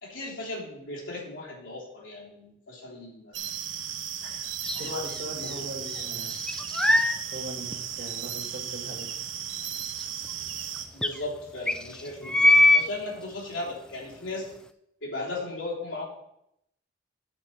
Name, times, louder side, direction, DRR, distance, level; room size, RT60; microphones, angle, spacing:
voice 1, 0.0-3.3 4.2-4.5 4.8-5.0 5.4-5.6 10.9-14.6 15.0-16.0, left 2 dB, 80° left, -4 dB, 3.3 m, -37 dB
sound 1, 3.3-10.9, right 9 dB, 85° right, 1.1 m, -35 dB
sound 2, 4.6-5.6 5.9-7.2 7.7-7.8 10.0-10.1 10.3-10.4 11.0-11.1 11.7-12.9, left 2 dB, 5° left, 0.4 m, -22 dB
voice 2, 4.7-6.3 7.3-9.2, right 1 dB, 55° right, 2 dB, 2.1 m, -40 dB
8.7 x 4.7 x 7.3 m, 0.79 s
head